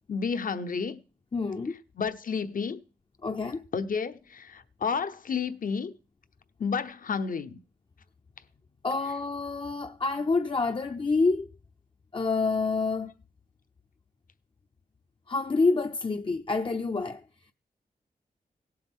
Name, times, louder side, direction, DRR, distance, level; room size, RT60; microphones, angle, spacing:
voice 1, 0.1-1.0 2.0-2.8 3.7-5.9 6.6-7.6, left 5 dB, 60° left, 0.9 m, -31 dB
voice 2, 1.3-1.8 3.2-3.6 8.8-11.5 12.1-13.1 15.3-17.2, left 3 dB, 35° left, 0.5 m, -27 dB
17.0 x 7.8 x 3.6 m
cardioid pair, 70°, 16 cm